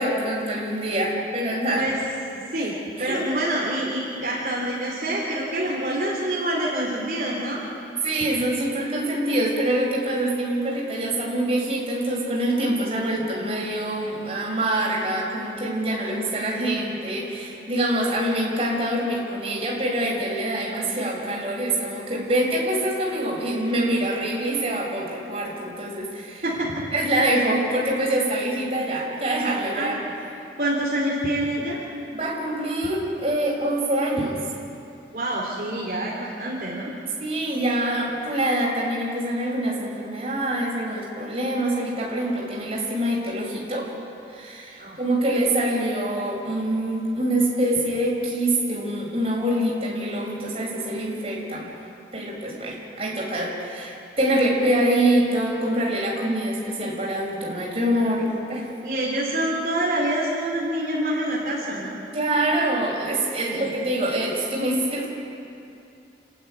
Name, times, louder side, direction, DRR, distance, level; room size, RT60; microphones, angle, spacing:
voice 1, 0.0-1.8 2.6-2.7 3.0-3.2 8.0-26.4 26.9-30.0 32.1-34.3 37.2-43.9 44.3-51.7 52.1-58.7 62.1-65.1, right 1 dB, 35° right, -3 dB, 5.6 m, -25 dB
voice 2, 2.5-7.6 26.4-26.8 29.7-29.9 30.6-31.8 35.1-36.9 44.8-45.0 58.8-62.0 63.4-63.7, right 1 dB, 50° right, -6 dB, 3.5 m, -26 dB
30.0 x 12.0 x 9.7 m, 2.8 s
head